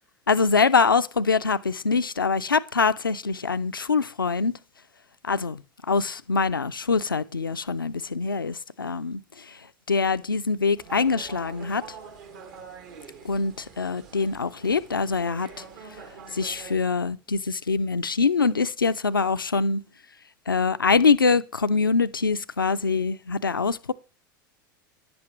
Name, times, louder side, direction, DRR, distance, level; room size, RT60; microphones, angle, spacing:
voice 1, 0.3-4.6 5.2-5.6 5.9-9.6 9.9-11.8 13.2-15.5 16.3-19.8 20.5-23.9, left 4 dB, 90° left, 0.4 m, -24 dB
sound 1, 10.8-16.8, right 6 dB, 60° right, 1.7 m, -45 dB
10.5 x 7.7 x 3.1 m
figure-of-eight pair, 85°, 11 cm